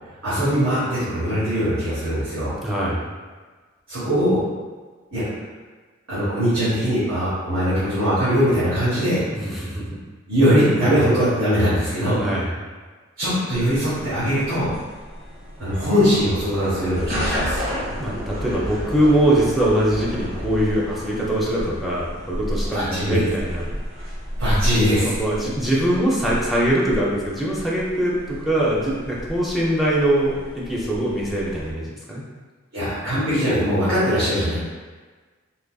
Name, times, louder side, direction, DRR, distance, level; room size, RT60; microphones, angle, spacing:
voice 1, 0.2-2.5 3.9-4.4 5.1-5.2 6.1-9.2 10.3-12.2 13.2-14.7 15.6-17.6 22.7-23.2 24.4-25.1 32.7-34.6, equal, 80° right, -13 dB, 1.3 m, -21 dB
voice 2, 2.6-3.0 9.3-9.8 12.2-12.5 18.0-23.7 25.0-32.2, right 1 dB, ahead, -6 dB, 0.5 m, -22 dB
sound 1, 13.5-31.7, equal, 50° right, 1.0 m, -32 dB
3.8 x 2.9 x 2.3 m, 1.4 s
head